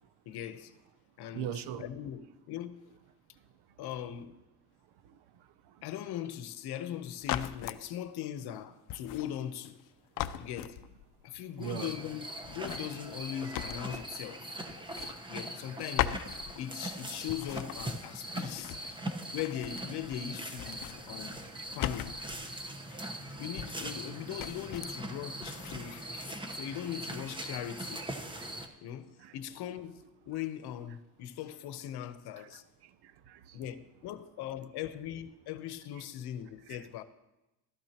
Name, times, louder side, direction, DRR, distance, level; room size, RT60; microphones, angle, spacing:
voice 1, 0.3-0.7 1.2-2.9 3.8-4.4 5.8-9.8 10.4-10.8 11.2-14.5 15.3-16.2 16.6-18.8 19.3-22.2 22.9-23.1 23.4-28.0 28.8-32.6 33.5-37.0, left 10 dB, 70° left, 0.9 m, -40 dB
voice 2, 1.3-1.8 5.0-5.8 11.6-11.9 21.4-21.6 26.5-26.6 29.2-29.4 32.4-32.5 32.8-33.6, right 9 dB, 75° right, 0.8 m, -42 dB
sound 1, 7.2-7.8 8.9-9.9 10.2-11.2 12.4-14.3 14.7-15.7 16.0-16.9 17.3-19.1 19.4-20.3 20.5-22.7 23.6-24.1 24.4-25.0 25.4-25.8, left 12 dB, 55° left, 0.6 m, -39 dB
sound 2, 11.6-28.7, right 1 dB, 10° right, 1.0 m, -41 dB
15.0 x 13.0 x 2.9 m
cardioid pair, 130°, 40 cm